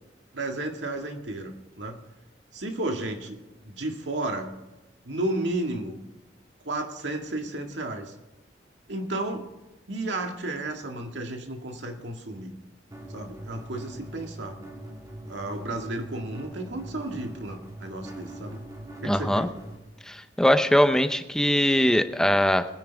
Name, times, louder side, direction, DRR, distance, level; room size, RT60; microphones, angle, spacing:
voice 1, 0.3-2.0 2.5-4.5 5.0-6.0 6.7-8.1 8.9-9.5 9.9-12.5 13.1-14.6 15.3-18.6 19.0-19.5, right 2 dB, 90° right, 3 dB, 2.0 m, -33 dB
sound 1, 12.9-19.8, right 1 dB, 20° right, 2.7 m, -42 dB
voice 2, 19.0-19.5 20.1-22.7, equal, 5° left, 9 dB, 0.7 m, -21 dB
21.5 x 10.0 x 3.5 m, 1.1 s
head